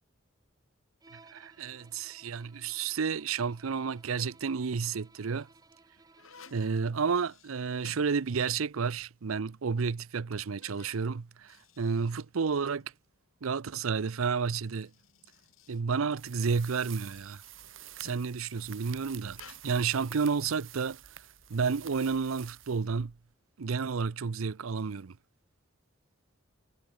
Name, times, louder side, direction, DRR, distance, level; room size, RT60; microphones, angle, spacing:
Bowed string instrument, 1.0-6.9, right 3 dB, 20° right, 1.4 m, -60 dB
voice 1, 1.1-5.5 6.5-12.9 13.4-14.9 15.7-17.4 18.0-21.0 21.5-23.1 23.6-25.2, right 5 dB, 90° right, 0.6 m, -31 dB
sound 1, 4.0-4.6 5.3-8.7 9.0-9.1 9.8-9.9 10.4-13.0 14.2-18.4 19.3-19.6, left 5 dB, 85° left, 5.6 m, -57 dB
sound 2, 16.2-23.3, right 11 dB, 70° right, 3.2 m, -49 dB
head